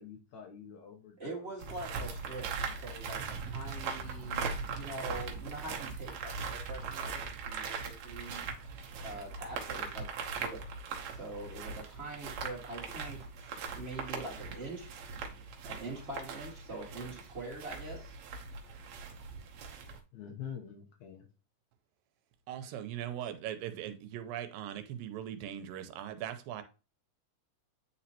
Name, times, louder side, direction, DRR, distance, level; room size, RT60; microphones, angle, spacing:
voice 1, 0.0-1.5 20.1-21.3, left 8 dB, 70° left, 2.0 m, -46 dB
voice 2, 1.2-8.5 8.7-10.6 11.1-14.9 15.6-18.1 22.6-22.7, right 2 dB, 25° right, 1.3 m, -44 dB
sound 1, 1.6-20.0, right 5 dB, 65° right, 1.8 m, -40 dB
voice 3, 22.5-26.6, right 10 dB, 90° right, 2.4 m, -40 dB
9.2 x 4.2 x 2.8 m
omnidirectional pair, 4.0 m